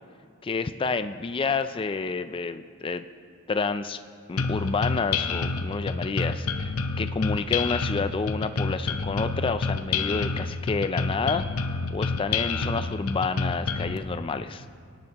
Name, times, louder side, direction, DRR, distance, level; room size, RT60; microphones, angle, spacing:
voice 1, 0.4-3.0 3.5-4.0 4.3-11.4 11.9-14.6, left 4 dB, 25° left, 10 dB, 0.3 m, -29 dB
sound 1, 4.4-14.0, left 4 dB, 90° left, 0.7 m, -28 dB
24.5 x 10.5 x 2.9 m, 2.4 s
head